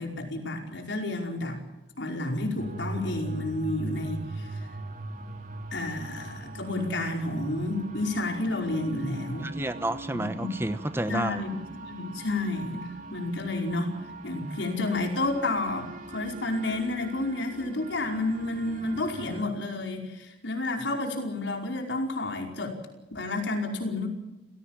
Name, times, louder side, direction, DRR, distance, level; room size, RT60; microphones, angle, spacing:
voice 1, 0.0-1.6 2.0-4.7 5.7-9.5 10.1-10.5 11.1-13.9 14.2-22.7 23.1-24.1, left 2 dB, 75° left, 3 dB, 5.1 m, -30 dB
sound 1, 2.6-19.4, right 2 dB, 45° right, 2.4 m, -41 dB
voice 2, 9.4-11.4, right 1 dB, 15° right, 11 dB, 1.0 m, -30 dB
30.0 x 17.5 x 7.4 m, 1.0 s
head